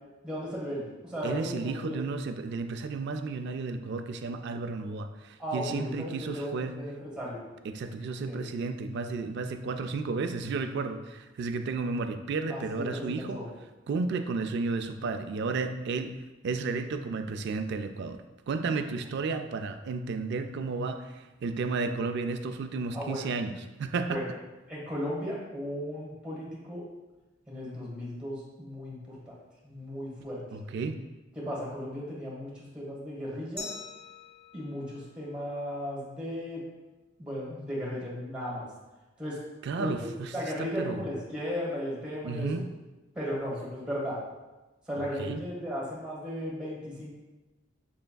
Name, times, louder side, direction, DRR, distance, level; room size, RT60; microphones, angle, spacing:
voice 1, 0.2-2.0 5.4-7.4 8.3-8.4 12.5-13.5 22.9-23.2 24.0-24.2 24.7-26.8 27.5-29.3 29.6-30.4 31.3-33.7 34.5-36.6 37.2-38.7 39.2-39.4 39.8-40.1 40.3-42.6 43.1-44.2 44.8-47.1, equal, 5° right, -6 dB, 1.4 m, -36 dB
voice 2, 1.2-6.7 7.6-13.4 13.9-16.1 16.4-24.2 30.5-31.0 39.6-40.3 40.6-41.0 42.2-42.7 45.0-45.4, right 4 dB, 55° right, 7 dB, 0.3 m, -33 dB
Glass, 33.6-36.3, left 3 dB, 20° left, 0.8 m, -46 dB
6.2 x 3.3 x 2.3 m, 1.1 s
head